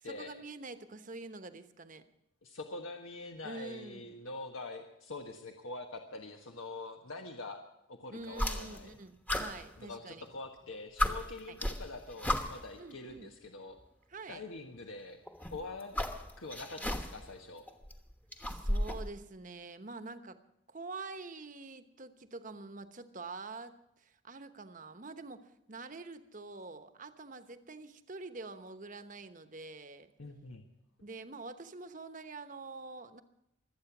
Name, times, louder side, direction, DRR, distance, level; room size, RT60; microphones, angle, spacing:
voice 1, 0.0-2.1 3.4-4.1 8.1-10.2 11.5-11.6 12.8-13.3 14.1-14.5 18.5-20.4 20.7-30.1 31.0-33.2, right 3 dB, 40° right, 10 dB, 1.1 m, -46 dB
voice 2, 2.4-7.6 7.9-9.0 9.8-13.8 14.3-15.2 15.5-15.9 16.4-17.7 30.2-30.7, left 2 dB, 90° left, 3 dB, 1.4 m, -44 dB
sound 1, 8.3-8.9 9.3-10.3 10.7-10.8 11.0-12.8 13.8-13.9 15.3-17.3 17.7-19.1, left 1 dB, 10° left, 1.1 m, -35 dB
24.5 x 8.7 x 6.1 m, 0.85 s
head